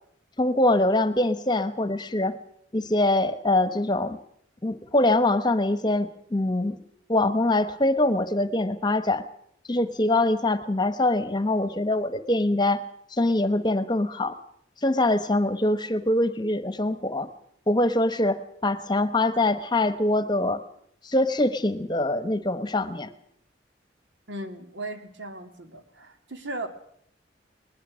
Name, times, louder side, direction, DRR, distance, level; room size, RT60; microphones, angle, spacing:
voice 1, 0.4-2.4 2.7-4.2 4.6-6.8 7.1-9.2 9.7-12.8 13.1-14.4 14.8-17.3 17.7-20.6 21.0-23.1, left 2 dB, 25° left, 12 dB, 1.0 m, -23 dB
voice 2, 24.3-26.7, right 2 dB, 85° right, 7 dB, 2.2 m, -37 dB
20.5 x 20.5 x 6.3 m, 0.69 s
head